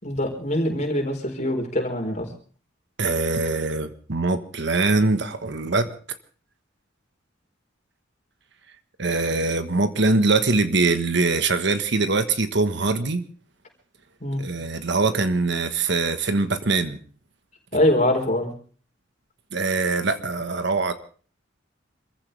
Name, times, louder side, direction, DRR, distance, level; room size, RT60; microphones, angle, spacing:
voice 1, 0.0-2.3 14.2-14.5 17.7-18.5, left 1 dB, 40° left, 4.5 m, -23 dB
voice 2, 3.0-5.9 9.0-13.2 14.4-17.0 19.5-20.9, right 3 dB, 65° right, 1.4 m, -23 dB
26.5 x 15.0 x 3.4 m
head